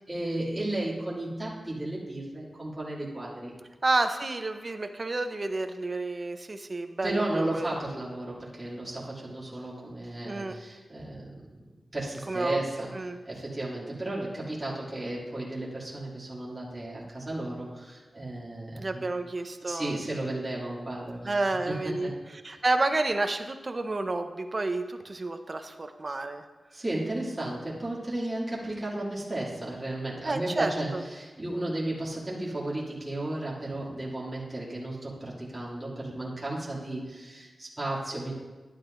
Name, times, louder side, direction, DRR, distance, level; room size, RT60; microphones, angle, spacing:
voice 1, 0.0-3.6 7.0-12.9 13.2-19.1 19.6-22.1 26.7-38.3, right 1 dB, 15° right, -7 dB, 2.4 m, -34 dB
voice 2, 3.8-7.8 10.2-10.6 12.3-12.6 12.9-13.2 18.8-20.0 21.2-22.1 22.4-26.4 30.2-31.0, right 2 dB, 35° right, 7 dB, 0.7 m, -30 dB
12.0 x 10.5 x 2.6 m, 1.3 s
wide cardioid pair, 105°, 0 cm